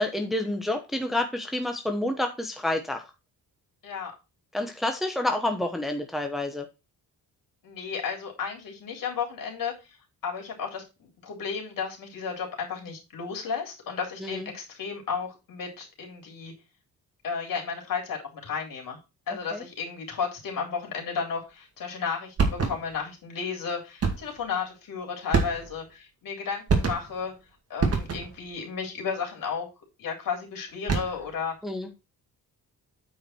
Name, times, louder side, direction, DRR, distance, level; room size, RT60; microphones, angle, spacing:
voice 1, 0.0-3.0 4.5-6.7 14.2-14.5 19.5-19.6 31.6-31.9, left 1 dB, ahead, 4 dB, 1.0 m, -28 dB
voice 2, 7.6-10.0 10.2-16.5 17.2-19.0 19.3-27.3 27.7-29.7 30.0-31.5, left 6 dB, 65° left, 1 dB, 3.7 m, -33 dB
sound 1, 22.4-23.0 24.0-24.4 25.3-25.9 26.7-27.3 27.8-28.5 30.7-31.3, right 4 dB, 40° right, 2.2 m, -26 dB
8.9 x 4.9 x 4.5 m, 0.27 s
cardioid pair, 140°, 36 cm